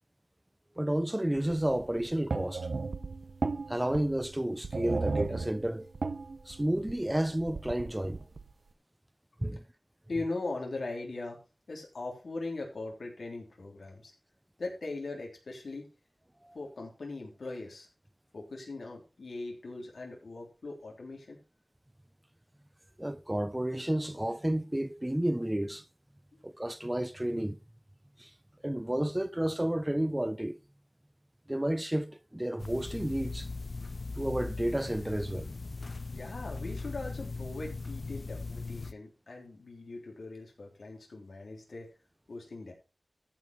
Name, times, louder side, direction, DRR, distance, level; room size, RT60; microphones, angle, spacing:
voice 1, 0.8-2.7 3.7-5.9 6.5-8.2 9.4-9.6 16.4-16.6 23.0-25.8 26.4-27.6 28.2-28.3 28.6-30.6 31.5-33.5 34.2-35.5, right 1 dB, 15° right, 0.9 m, -31 dB
sound 1, 1.3-8.5, right 3 dB, 80° right, 0.9 m, -36 dB
voice 2, 10.1-11.4 11.7-14.1 14.6-15.9 16.5-17.9 18.3-21.4 26.3-26.4 36.1-41.9 42.3-42.7, left 3 dB, 90° left, 3.4 m, -40 dB
sound 2, 32.6-38.9, left 3 dB, 60° left, 0.6 m, -39 dB
14.0 x 5.4 x 5.3 m
wide cardioid pair, 55°, 0 cm